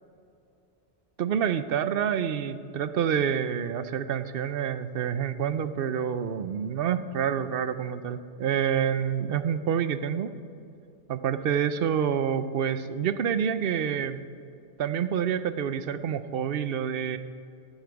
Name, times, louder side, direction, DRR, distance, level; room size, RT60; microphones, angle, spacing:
voice 1, 1.2-10.3 11.1-14.2 14.8-17.2, right 8 dB, 65° right, 12 dB, 0.7 m, -27 dB
15.5 x 8.9 x 4.7 m, 2.6 s
omnidirectional pair, 1.1 m